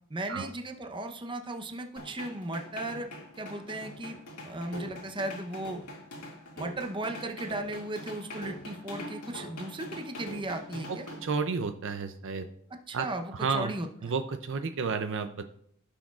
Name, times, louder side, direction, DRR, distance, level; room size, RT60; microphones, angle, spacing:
voice 1, 0.1-3.1 3.4-5.8 6.6-11.1 12.9-14.1, right 1 dB, 20° right, 4 dB, 0.8 m, -36 dB
sound 1, 2.0-11.2, equal, 85° left, 2.2 m, -43 dB
voice 2, 10.9-12.5 12.9-13.1 13.4-13.7 14.0-15.4, right 5 dB, 60° right, 8 dB, 0.5 m, -31 dB
15.5 x 6.1 x 2.4 m, 0.69 s
head